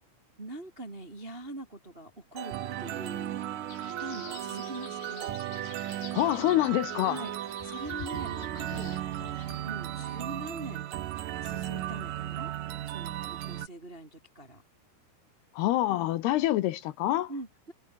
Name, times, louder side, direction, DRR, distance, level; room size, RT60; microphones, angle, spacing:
voice 1, 0.4-3.4 3.8-5.4 7.0-7.3 7.6-9.0 9.6-10.9 11.4-12.5 12.8-14.6 17.3-17.7, right 2 dB, 20° right, 1.4 m, -43 dB
sound 1, 2.4-13.7, right 13 dB, 65° right, 2.3 m, -36 dB
Wind instrument woodwind instrument, 2.4-10.5, right 8 dB, 80° right, 1.1 m, -44 dB
sound 2, 3.7-9.6, left 6 dB, 60° left, 6.7 m, -48 dB
voice 2, 6.1-7.2 15.5-17.3, left 15 dB, 75° left, 2.7 m, -26 dB
omnidirectional pair, 5.2 m